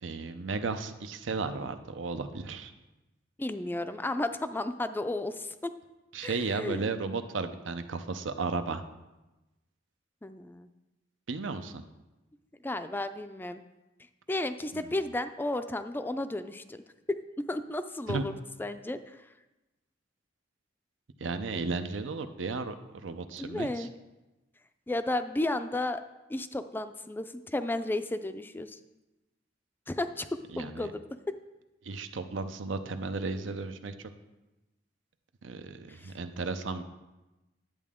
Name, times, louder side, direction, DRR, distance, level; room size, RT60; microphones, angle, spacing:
voice 1, 0.0-2.7 6.1-8.8 11.3-11.8 14.7-14.9 18.1-18.2 21.2-23.9 30.5-30.9 31.8-34.1 35.4-36.8, right 4 dB, 85° right, 9 dB, 0.6 m, -34 dB
voice 2, 3.4-5.7 6.2-6.9 10.2-10.7 12.6-13.6 14.3-16.8 17.1-17.2 17.5-18.3 18.6-19.3 23.4-23.9 24.9-26.0 26.3-28.8 29.9-30.3 30.6-31.4 35.9-36.1, left 2 dB, 10° left, 10 dB, 0.3 m, -33 dB
10.5 x 8.3 x 3.6 m, 1.1 s
head